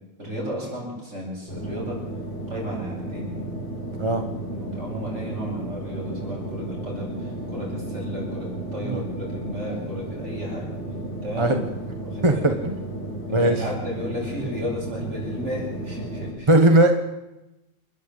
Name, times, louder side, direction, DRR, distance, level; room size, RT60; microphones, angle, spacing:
voice 1, 0.2-2.0 2.5-3.3 4.5-11.5 12.0-12.6 13.3-16.5, equal, 60° right, -3 dB, 8.3 m, -34 dB
sound 1, 1.5-16.3, right 1 dB, 40° left, 7.3 m, -33 dB
voice 2, 12.2-12.8 13.3-13.6 16.5-16.9, right 1 dB, 25° right, 5 dB, 1.4 m, -19 dB
28.5 x 11.5 x 8.1 m, 0.97 s
omnidirectional pair, 1.4 m